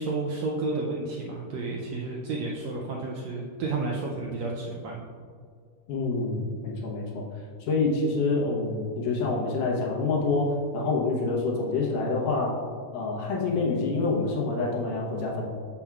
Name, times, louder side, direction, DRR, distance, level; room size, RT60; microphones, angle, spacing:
voice 1, 0.0-5.0, right 3 dB, 80° right, -2 dB, 1.5 m, -31 dB
voice 2, 5.9-7.2 7.6-12.6 12.9-15.4, left 3 dB, 80° left, -3 dB, 2.6 m, -27 dB
7.0 x 6.9 x 2.3 m, 2.1 s
omnidirectional pair, 3.7 m